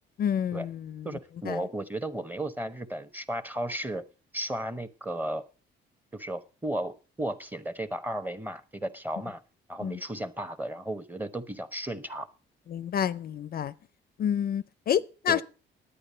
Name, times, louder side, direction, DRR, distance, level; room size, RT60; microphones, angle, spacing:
voice 1, 0.2-1.1 1.5-1.6 9.8-10.0 12.7-13.7 14.2-15.4, left 9 dB, 50° left, 0.4 m, -29 dB
voice 2, 1.0-4.0 4.3-5.4 6.1-9.4 9.7-12.3 15.3-15.4, right 1 dB, 10° right, 0.9 m, -34 dB
10.0 x 9.0 x 5.5 m
cardioid pair, 90°, 20 cm